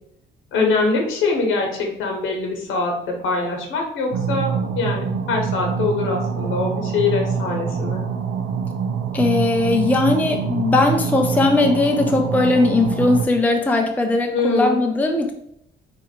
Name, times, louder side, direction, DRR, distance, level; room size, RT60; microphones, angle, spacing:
voice 1, 0.5-8.0 14.3-14.8, left 3 dB, 90° left, 1 dB, 1.1 m, -23 dB
sound 1, 4.1-13.3, right 6 dB, 90° right, 0.5 m, -25 dB
voice 2, 9.1-15.3, left 2 dB, 10° left, 3 dB, 0.5 m, -19 dB
4.2 x 2.5 x 3.8 m, 0.74 s
cardioid pair, 90°, 20 cm